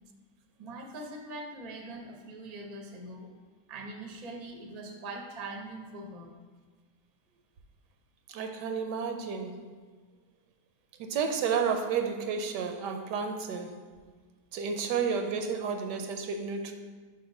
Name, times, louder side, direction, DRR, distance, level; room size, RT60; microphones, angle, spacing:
voice 1, 0.6-3.3 3.7-6.3, right 2 dB, 55° right, 2 dB, 0.4 m, -42 dB
voice 2, 8.3-9.6 11.0-13.8 14.5-16.7, right 6 dB, 90° right, 5 dB, 1.2 m, -31 dB
4.3 x 4.3 x 5.2 m, 1.5 s
omnidirectional pair, 1.8 m